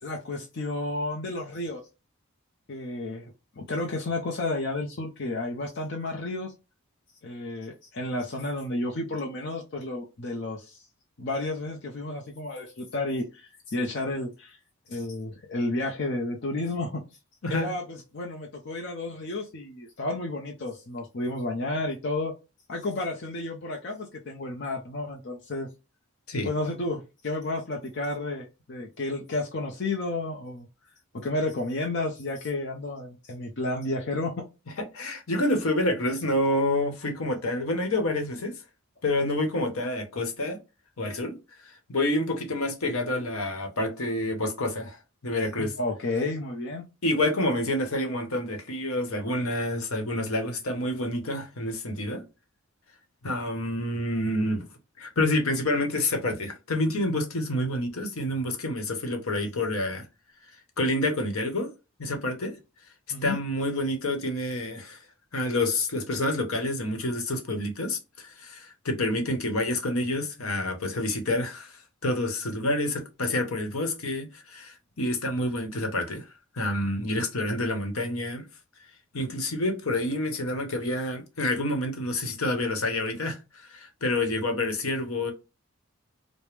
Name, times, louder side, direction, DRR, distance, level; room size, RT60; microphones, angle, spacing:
voice 1, 0.0-1.8 2.7-6.5 7.2-10.8 11.2-14.6 14.9-17.0 17.5-22.3 22.7-25.7 26.4-30.7 31.1-34.4 45.6-46.8 63.1-63.4, left 2 dB, 55° left, 0.6 m, -31 dB
voice 2, 34.9-38.5 39.0-40.6 41.0-41.4 41.9-45.0 45.2-45.7 47.0-52.2 53.2-54.7 55.0-60.0 60.8-61.7 62.0-62.6 63.2-65.0 65.3-76.2 76.5-78.4 79.1-85.3, left 1 dB, 80° left, 1.0 m, -28 dB
4.9 x 2.1 x 3.2 m
head